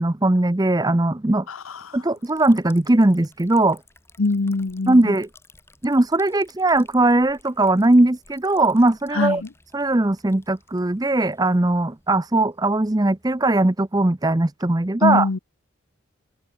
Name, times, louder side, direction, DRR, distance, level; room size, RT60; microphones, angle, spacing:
voice 1, 0.0-1.5 1.9-3.8 4.9-5.3 5.8-9.4 9.7-15.3, right 2 dB, 15° right, 0.6 m, -19 dB
voice 2, 1.5-2.0 4.2-5.2 9.1-9.5 15.0-15.4, left 3 dB, 70° left, 0.8 m, -23 dB
Liquid, 2.2-14.6, left 3 dB, 10° left, 6.0 m, -55 dB
open air
head